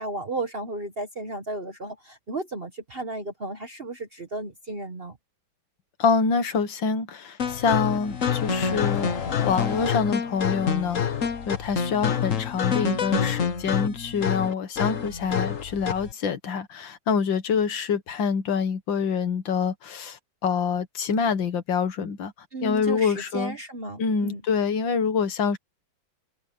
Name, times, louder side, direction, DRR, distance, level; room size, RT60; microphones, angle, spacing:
voice 1, 0.0-5.2 22.5-24.4, right 2 dB, 35° right, 1.1 m, -34 dB
voice 2, 6.0-9.1 9.4-11.0 11.5-22.3 22.6-23.6 24.0-25.6, left 5 dB, 70° left, 2.1 m, -26 dB
sound 1, 7.4-16.1, left 7 dB, 45° left, 1.6 m, -27 dB
omnidirectional pair, 2.1 m